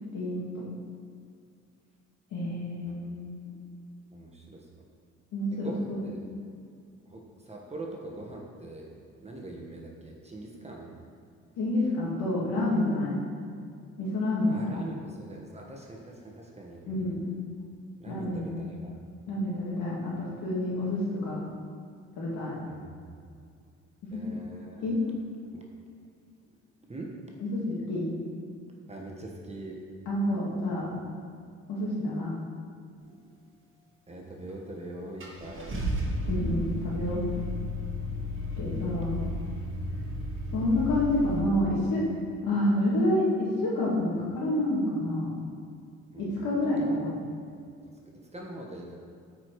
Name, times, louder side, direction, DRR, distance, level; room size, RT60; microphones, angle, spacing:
voice 1, 0.1-0.6 2.3-3.3 5.3-6.1 11.6-13.2 14.0-14.8 16.9-17.2 18.1-18.6 19.3-21.4 22.2-22.5 24.1-24.2 24.8-25.0 27.5-27.6 27.9-28.1 30.1-30.9 31.7-32.3 36.3-37.2 38.6-39.1 40.5-42.1 42.4-45.3 46.2-47.1, left 1 dB, 90° left, -6 dB, 2.1 m, -28 dB
voice 2, 4.1-4.7 5.5-6.2 7.1-8.9 9.2-11.0 14.5-16.8 18.0-19.0 22.7-23.1 24.1-24.9 25.5-25.6 26.9-27.1 28.9-29.8 34.1-35.8 46.1-46.5 46.8-47.0 47.4-47.5 48.1-49.0, right 2 dB, 20° right, -1 dB, 1.3 m, -43 dB
Car / Engine starting, 34.5-34.6 35.2-41.4, equal, 40° right, 1.8 m, -33 dB
8.5 x 5.0 x 4.7 m, 2.3 s
cardioid pair, 90°, 30 cm